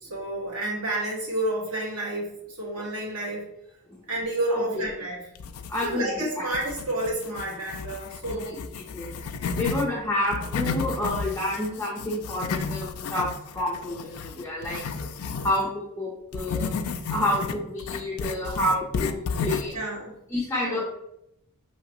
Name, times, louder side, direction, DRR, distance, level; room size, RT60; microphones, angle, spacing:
voice 1, 0.0-3.5 4.1-5.2 5.8-8.5 19.7-20.1 20.7-20.8, right 1 dB, 75° right, -5 dB, 1.5 m, -30 dB
sound 1, 5.3-6.2 6.5-9.9 10.2-15.6 16.3-19.8, left 4 dB, 70° left, 0.4 m, -32 dB
voice 2, 5.7-6.5 8.3-9.1 9.6-15.1 15.4-16.7 17.1-19.8 20.3-20.8, left 1 dB, 15° left, -4 dB, 0.6 m, -29 dB
5.6 x 2.9 x 3.0 m, 0.79 s
head